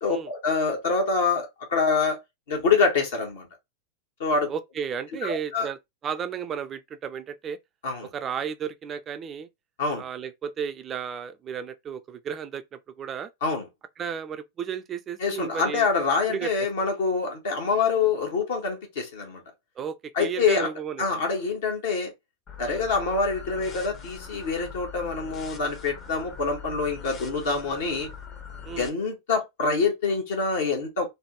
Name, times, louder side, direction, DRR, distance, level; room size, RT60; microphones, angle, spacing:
voice 1, 0.0-2.2 2.5-3.5 4.2-4.5 5.2-5.7 7.8-8.1 9.8-10.0 13.4-13.7 15.2-19.4 20.1-20.7 21.0-22.1 22.6-28.1 28.8-31.1, left 4 dB, 60° left, 1.1 m, -25 dB
voice 2, 4.5-7.6 8.0-9.5 10.0-13.3 14.0-15.9 16.3-16.7 19.8-21.2 22.6-22.8 28.6-28.9, right 7 dB, 25° right, 0.4 m, -34 dB
sound 1, 22.5-28.9, left 6 dB, 30° left, 0.8 m, -42 dB
3.3 x 2.2 x 2.8 m
figure-of-eight pair, 90°, 0 cm